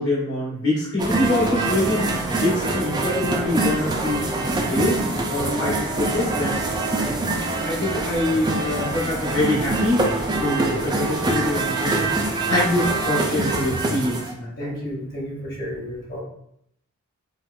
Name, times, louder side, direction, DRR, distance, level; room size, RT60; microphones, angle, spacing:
voice 1, 0.0-7.2 7.6-10.1 10.4-14.7, left 1 dB, 70° left, -7 dB, 1.2 m, -25 dB
sound 1, 1.0-14.3, right 2 dB, 20° right, 0.3 m, -24 dB
voice 2, 14.6-16.2, equal, 45° left, -4 dB, 1.0 m, -32 dB
4.3 x 2.3 x 2.2 m, 0.73 s
head